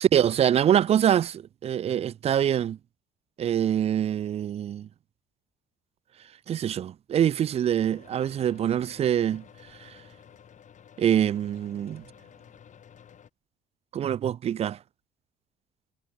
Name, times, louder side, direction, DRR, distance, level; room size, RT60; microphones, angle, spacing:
voice 1, 0.0-2.8 3.4-4.9 6.5-9.4 9.8-9.9 11.0-12.0 13.9-14.8, right 10 dB, 40° right, 0.4 m, -24 dB
sound 1, 7.7-13.3, left 8 dB, 45° left, 6.0 m, -52 dB
cardioid pair, 110°, 17 cm